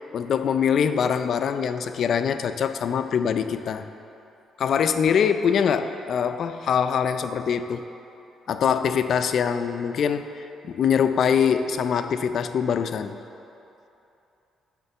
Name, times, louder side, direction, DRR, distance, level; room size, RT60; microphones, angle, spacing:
voice 1, 0.1-3.9 4.6-7.8 8.5-10.2 10.6-13.1, left 7 dB, 60° left, 9 dB, 0.4 m, -23 dB
9.0 x 3.7 x 6.8 m, 2.9 s
cardioid pair, 90°, 0 cm